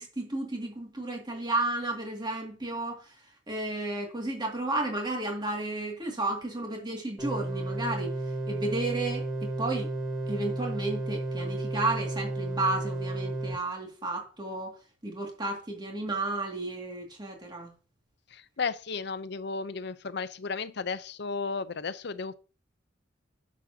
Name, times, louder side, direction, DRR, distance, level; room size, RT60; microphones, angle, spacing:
voice 1, 0.0-3.2 3.5-8.1 8.5-9.9 10.3-14.8 15.0-17.7, right 2 dB, 25° right, 2.2 m, -32 dB
sound 1, 7.2-13.5, right 1 dB, 5° right, 2.5 m, -33 dB
voice 2, 18.3-22.3, left 4 dB, 65° left, 0.7 m, -34 dB
9.8 x 7.3 x 2.8 m
head